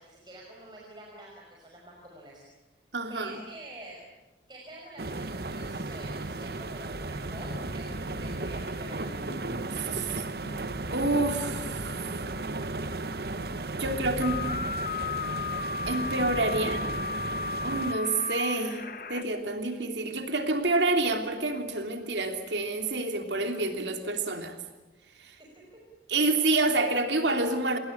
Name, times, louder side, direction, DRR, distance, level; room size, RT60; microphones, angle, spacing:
voice 1, 0.0-2.4 3.1-4.0 4.5-7.9 8.2-9.2 25.7-25.8, right 1 dB, 25° right, -2 dB, 5.7 m, -47 dB
voice 2, 2.9-3.3 9.7-10.3 10.9-12.3 13.8-14.4 15.9-16.9 17.6-18.8 19.1-24.6 25.2-25.3 26.1-27.8, right 2 dB, 80° right, 5 dB, 3.1 m, -28 dB
sound 1, 5.0-17.9, right 2 dB, 60° right, 1.1 m, -35 dB
sound 2, 7.3-14.3, equal, 75° left, 7.3 m, -47 dB
sound 3, 14.2-19.2, left 4 dB, 50° left, 1.4 m, -34 dB
29.5 x 20.5 x 8.5 m, 1.1 s
head